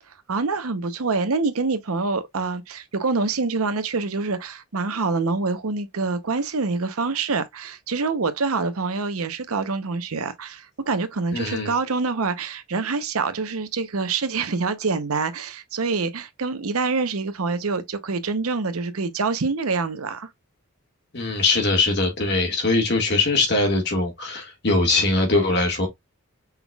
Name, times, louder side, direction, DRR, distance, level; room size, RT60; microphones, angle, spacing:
voice 1, 0.3-20.3, right 4 dB, 80° right, 0.8 m, -26 dB
voice 2, 11.3-11.7 21.1-25.9, left 3 dB, 50° left, 1.7 m, -21 dB
5.5 x 4.0 x 2.3 m
head